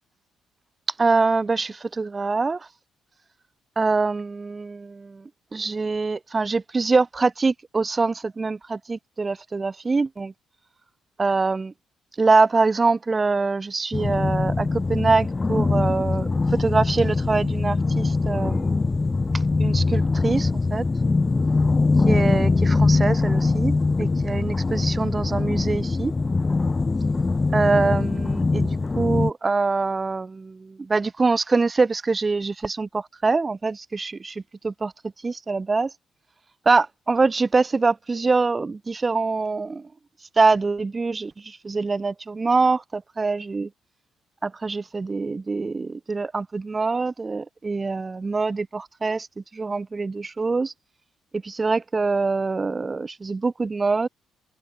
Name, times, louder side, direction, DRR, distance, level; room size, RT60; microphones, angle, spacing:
voice 1, 1.0-2.7 3.8-5.2 5.5-10.3 11.2-11.7 12.2-18.9 19.6-20.8 22.1-26.1 27.5-34.9 35.2-35.9 36.7-39.9 40.4-43.7 44.4-49.3 49.5-50.7 51.3-54.1, right 3 dB, 25° right, 3.9 m, -24 dB
sound 1, 13.9-29.3, left 3 dB, 25° left, 1.3 m, -22 dB
cardioid pair, 90°, 0 cm